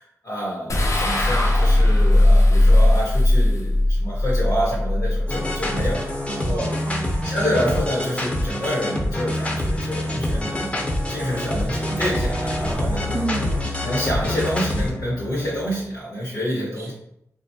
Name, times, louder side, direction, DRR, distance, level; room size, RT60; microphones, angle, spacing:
voice 1, 0.0-6.7 7.2-10.8 11.1-13.2 13.8-16.9, equal, 85° left, -6 dB, 1.1 m, -28 dB
sound 1, 0.7-6.1, left 1 dB, 65° left, 0.5 m, -18 dB
sound 2, 5.3-14.9, left 1 dB, 20° left, 0.6 m, -26 dB
voice 2, 6.3-7.4 13.1-13.7 16.8-16.9, right 3 dB, 50° right, -1 dB, 0.4 m, -31 dB
sound 3, 9.5-16.0, left 1 dB, 90° right, 0.6 m, -34 dB
4.0 x 2.3 x 2.7 m, 0.79 s
wide cardioid pair, 85°, 6 cm